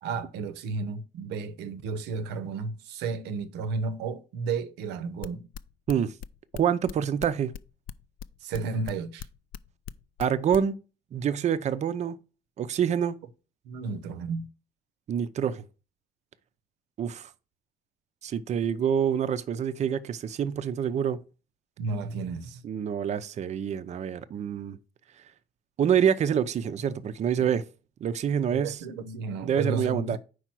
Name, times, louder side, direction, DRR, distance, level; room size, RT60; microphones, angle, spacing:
voice 1, 0.0-5.5 8.4-9.3 13.6-14.5 21.8-22.6 27.4-27.5 28.5-30.2, right 4 dB, 85° right, 0.8 m, -33 dB
sound 1, 5.2-10.7, left 9 dB, 60° left, 0.4 m, -39 dB
voice 2, 6.5-7.5 10.2-10.7 11.1-12.2 12.6-13.2 15.1-15.6 17.0-17.3 18.2-21.2 22.6-24.8 25.8-27.6 28.0-28.8 29.4-30.2, right 8 dB, 45° right, 0.5 m, -26 dB
5.0 x 4.5 x 6.0 m
cardioid pair, 110°, 17 cm